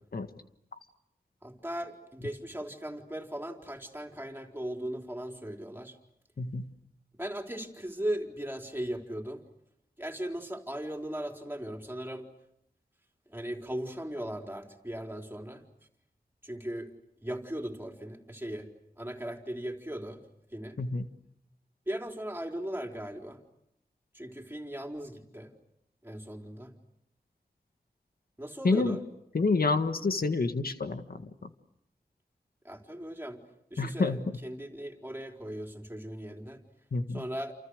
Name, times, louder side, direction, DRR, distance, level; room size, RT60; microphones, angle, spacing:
voice 1, 1.4-6.0 7.1-9.4 10.0-12.3 13.3-15.6 16.4-16.9 17.2-18.7 19.0-20.2 20.5-20.8 21.9-23.4 24.1-25.5 26.0-26.7 28.4-29.0 32.6-33.4 33.7-36.6 37.1-37.6, right 1 dB, 15° right, 3 dB, 4.3 m, -38 dB
voice 2, 28.6-29.0 29.3-31.5 33.8-34.2 36.9-37.2, left 3 dB, 65° left, 8 dB, 1.7 m, -28 dB
29.0 x 28.5 x 6.5 m, 0.78 s
wide cardioid pair, 70°, 16 cm